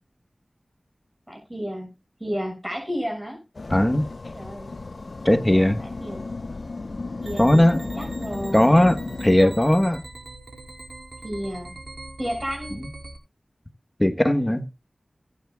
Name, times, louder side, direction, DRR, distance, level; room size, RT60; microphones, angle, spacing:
voice 1, 1.3-1.9 2.2-3.4 4.3-4.7 5.5-6.2 7.2-8.9 9.4-9.6 11.2-11.7 12.2-12.8 14.1-14.6, equal, 20° right, 6.2 m, -32 dB
sound 1, 3.5-9.4, left 3 dB, 65° left, 0.7 m, -34 dB
voice 2, 3.7-4.1 5.2-5.8 7.4-7.9 8.5-10.0 12.8-12.9 14.0-14.6, left 1 dB, 15° left, 1.2 m, -18 dB
sound 2, 7.2-13.2, right 2 dB, 70° right, 4.6 m, -41 dB
19.5 x 9.5 x 2.3 m
wide cardioid pair, 45°, 0 cm